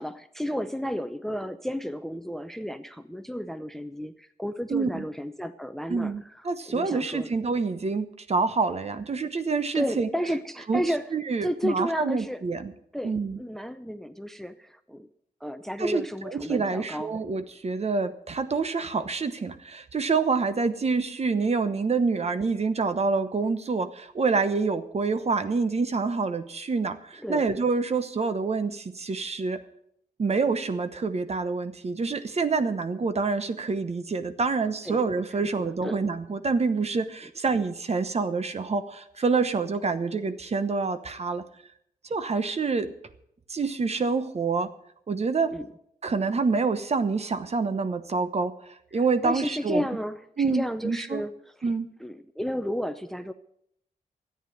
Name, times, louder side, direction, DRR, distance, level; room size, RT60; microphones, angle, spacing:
voice 1, 0.0-6.1 6.7-7.3 9.7-11.1 11.4-12.4 12.9-15.1 15.4-17.2 27.2-27.4 34.8-35.0 35.3-35.4 35.8-36.0 45.5-45.7 48.9-51.7 52.0-53.3, equal, ahead, 11 dB, 0.6 m, -32 dB
voice 2, 4.7-5.0 5.9-10.1 10.7-10.8 11.1-12.7 13.0-13.4 15.8-29.6 30.2-41.4 42.1-42.9 43.5-44.7 45.1-45.5 46.0-48.5 48.9-49.8 50.4-51.2 51.6-51.9, right 4 dB, 45° right, 11 dB, 1.0 m, -27 dB
13.5 x 9.3 x 7.8 m, 0.73 s
wide cardioid pair, 115°, 15 cm